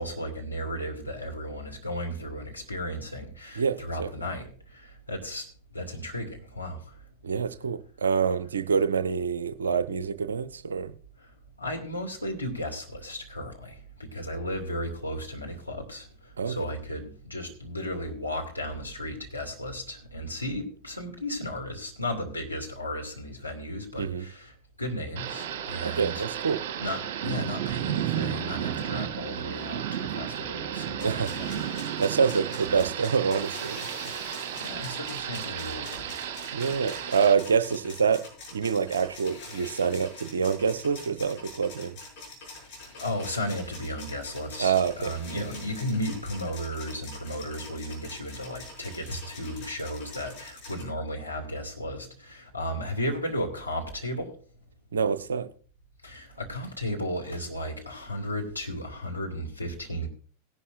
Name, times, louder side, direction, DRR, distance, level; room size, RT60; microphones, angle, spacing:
voice 1, 0.0-5.5 5.7-6.9 11.6-24.5 24.8-26.2 26.8-31.7 32.7-32.8 34.5-36.1 43.0-54.3 56.0-60.1, equal, 90° left, 2.3 m, -34 dB
voice 2, 3.5-4.1 7.2-10.9 16.4-16.6 24.0-24.3 25.8-26.6 31.0-31.4 32.0-33.9 36.5-38.3 38.5-42.0 44.6-45.5 54.9-55.5, right 6 dB, 70° right, 0.7 m, -26 dB
Thunder / Rain, 25.2-37.3, right 10 dB, 50° right, 1.6 m, -33 dB
sound 1, 31.0-50.8, left 3 dB, 40° left, 6.9 m, -45 dB
17.5 x 11.0 x 2.6 m
figure-of-eight pair, 90°, 0 cm